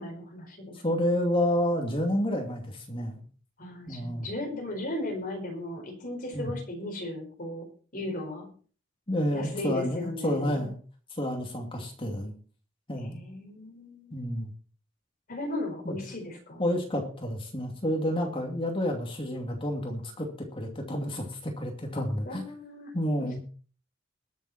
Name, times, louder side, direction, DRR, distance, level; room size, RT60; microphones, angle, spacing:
voice 1, 0.0-0.8 3.6-7.6 7.9-8.5 9.3-10.7 12.9-14.2 15.3-16.6 22.2-22.9, left 1 dB, 40° left, 2 dB, 4.5 m, -36 dB
voice 2, 0.8-3.2 3.9-4.3 6.3-6.5 9.1-10.8 11.2-12.3 12.9-13.2 14.1-14.5 15.8-16.0 16.6-22.4 22.9-23.4, equal, 25° left, 2 dB, 2.5 m, -29 dB
21.0 x 7.4 x 4.3 m, 0.41 s
head